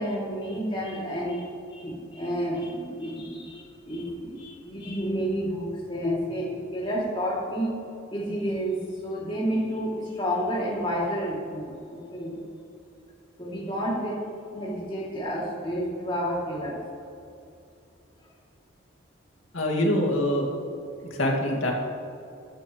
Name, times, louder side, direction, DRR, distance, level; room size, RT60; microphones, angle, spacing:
voice 1, 0.0-7.8 8.1-12.4 13.4-14.2 14.5-16.8, equal, 25° left, -4 dB, 3.0 m, -30 dB
voice 2, 19.5-20.5 21.0-21.7, left 1 dB, 80° left, -1 dB, 2.3 m, -24 dB
15.5 x 12.5 x 3.3 m, 2.7 s
head